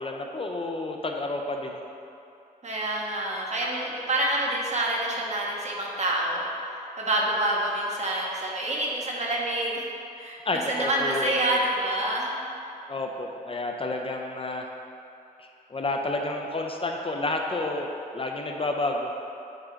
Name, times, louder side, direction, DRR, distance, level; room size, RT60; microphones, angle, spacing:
voice 1, 0.0-1.8 10.5-11.3 12.9-14.7 15.4-19.1, left 2 dB, 35° left, 2 dB, 0.6 m, -30 dB
voice 2, 2.6-6.5 7.0-9.9 10.2-10.4 10.7-12.4, right 1 dB, 45° right, -3 dB, 1.4 m, -27 dB
8.8 x 3.8 x 5.1 m, 2.7 s
cardioid pair, 80°, 16 cm